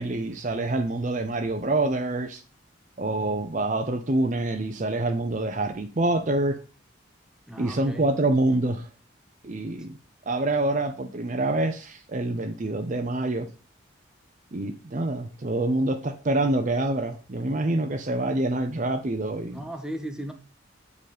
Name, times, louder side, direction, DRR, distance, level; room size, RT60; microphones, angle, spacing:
voice 1, 0.0-2.4 3.0-6.6 7.6-8.9 9.4-10.0 10.3-13.5 14.5-19.7, right 2 dB, 40° right, 0.6 m, -26 dB
voice 2, 7.5-8.1 19.5-20.3, right 1 dB, 5° right, 0.9 m, -36 dB
7.7 x 4.1 x 5.0 m
head